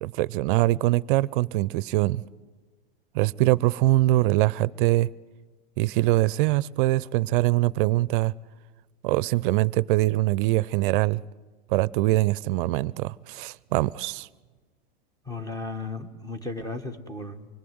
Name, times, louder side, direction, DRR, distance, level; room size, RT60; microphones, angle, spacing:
voice 1, 0.0-2.2 3.1-5.1 5.8-8.3 9.0-11.2 11.7-14.3, right 17 dB, 60° right, 0.6 m, -23 dB
voice 2, 15.3-17.5, left 3 dB, 10° left, 1.8 m, -35 dB
25.5 x 20.0 x 7.9 m
hypercardioid pair, 115°, 29 cm